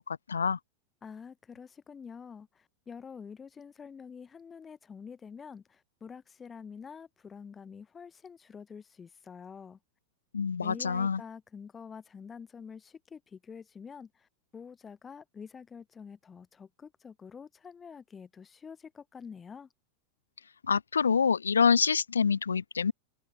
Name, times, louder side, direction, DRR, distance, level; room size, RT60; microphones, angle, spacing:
voice 1, 0.1-0.6 10.3-11.2 20.7-22.9, left 6 dB, 70° left, 0.5 m, -26 dB
voice 2, 1.0-9.8 10.6-14.3 14.5-19.7, left 6 dB, 20° left, 3.1 m, -47 dB
figure-of-eight pair, 90°, 0 cm